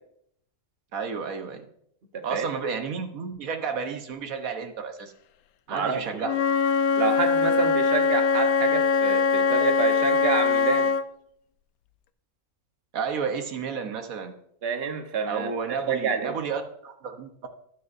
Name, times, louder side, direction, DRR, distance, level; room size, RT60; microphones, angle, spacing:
voice 1, 0.9-1.7 2.2-5.1 5.7-6.3 12.9-14.3 15.3-17.5, right 6 dB, 70° right, 6 dB, 1.5 m, -32 dB
voice 2, 2.1-2.5 5.7-6.0 7.0-10.9 14.6-16.4, right 5 dB, 45° right, 5 dB, 1.3 m, -28 dB
Wind instrument woodwind instrument, 6.2-11.0, left 5 dB, 80° left, 1.1 m, -22 dB
20.0 x 6.7 x 2.6 m, 0.70 s
omnidirectional pair, 1.5 m